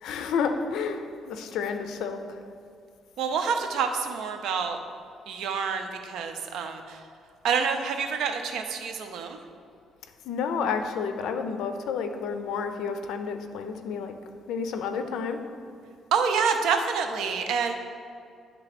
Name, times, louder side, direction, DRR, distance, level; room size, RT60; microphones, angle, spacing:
voice 1, 0.0-2.4 10.3-14.1 14.5-15.4, left 5 dB, 80° left, 7 dB, 0.5 m, -30 dB
voice 2, 3.2-4.8 5.3-7.0 7.4-9.4 16.1-17.7, right 6 dB, 80° right, 6 dB, 0.6 m, -27 dB
9.7 x 3.3 x 4.1 m, 2.3 s
cardioid pair, 140°, 0 cm